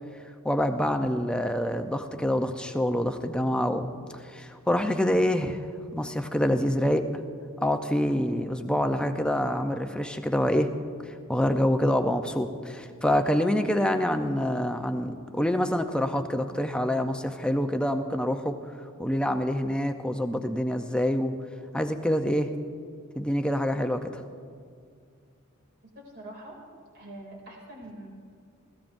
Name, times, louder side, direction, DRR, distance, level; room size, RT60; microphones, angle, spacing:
voice 1, 0.4-3.9 4.2-7.1 7.6-10.7 11.0-18.6 19.0-21.3 21.7-22.5 23.2-24.2, left 1 dB, 5° left, 6 dB, 0.6 m, -26 dB
voice 2, 25.9-26.6 26.9-28.1, right 1 dB, 50° right, -1 dB, 2.7 m, -44 dB
20.5 x 16.0 x 2.6 m, 2.2 s
head